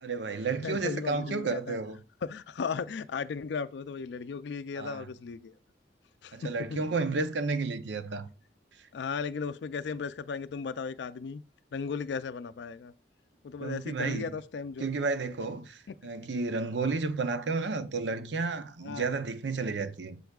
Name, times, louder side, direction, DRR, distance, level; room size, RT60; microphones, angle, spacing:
voice 1, 0.0-2.0 4.8-5.1 6.3-8.3 13.6-14.3 14.8-20.2, right 4 dB, 90° right, 0.7 m, -32 dB
voice 2, 0.6-1.8 2.2-5.5 6.2-6.8 8.9-11.4 11.7-12.9 13.4-15.0 15.9-16.0 18.8-19.1, left 5 dB, 75° left, 0.4 m, -36 dB
7.9 x 7.0 x 2.4 m
head